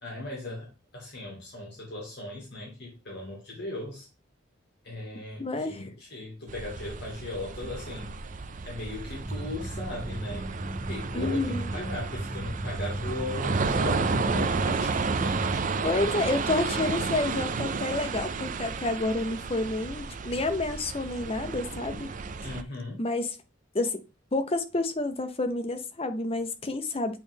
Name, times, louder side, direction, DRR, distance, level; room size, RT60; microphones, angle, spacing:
voice 1, 0.0-4.1 4.8-8.1 8.6-10.5 10.9-15.6 16.5-16.6 22.4-23.0, left 1 dB, 60° left, 2.0 m, -38 dB
voice 2, 5.4-5.9 11.1-11.8 15.8-22.1 23.0-23.4 23.7-24.0 24.3-27.2, left 2 dB, 30° left, 0.7 m, -29 dB
sound 1, 6.5-22.6, right 4 dB, 40° right, 0.4 m, -32 dB
sound 2, 9.2-16.1, right 1 dB, 20° right, 0.9 m, -36 dB
8.5 x 3.1 x 3.5 m
head